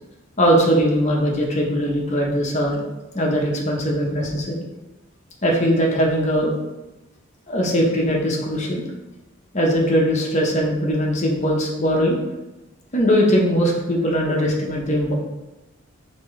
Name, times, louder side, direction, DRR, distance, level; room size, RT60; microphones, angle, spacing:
voice 1, 0.4-2.8 3.1-4.6 5.4-6.5 7.5-8.8 9.5-12.2 12.9-15.1, equal, 35° left, -1 dB, 0.7 m, -20 dB
4.2 x 3.4 x 3.2 m, 1.0 s
head